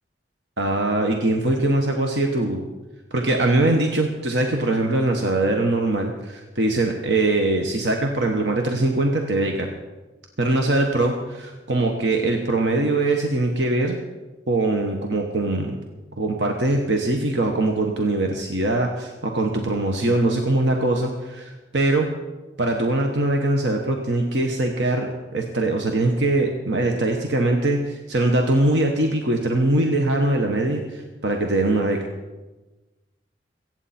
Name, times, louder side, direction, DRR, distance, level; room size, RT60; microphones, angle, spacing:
voice 1, 0.6-2.7 3.1-9.7 10.4-14.0 14.5-15.8 16.2-22.1 22.6-25.1 25.3-32.0, right 2 dB, 80° right, 2 dB, 1.2 m, -22 dB
23.0 x 8.9 x 4.3 m, 1.2 s
head